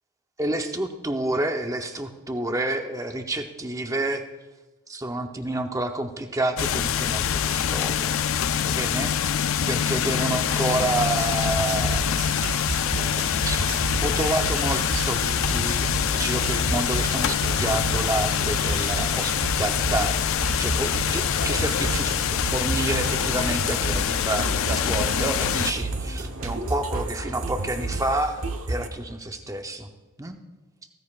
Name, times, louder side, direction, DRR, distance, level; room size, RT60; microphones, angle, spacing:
voice 1, 0.4-4.2 4.9-8.2 8.6-9.1 9.7-12.4 12.8-13.7 14.0-20.1 20.6-22.2 22.5-29.9 30.2-30.4, right 2 dB, 15° right, 5 dB, 0.8 m, -29 dB
sound 1, 6.6-25.7, left 8 dB, 65° left, 0.4 m, -25 dB
sound 2, 11.1-28.9, right 2 dB, 75° right, 1.0 m, -31 dB
sound 3, 16.1-27.8, right 2 dB, 40° right, 1.1 m, -42 dB
15.5 x 14.5 x 2.4 m, 1.2 s
head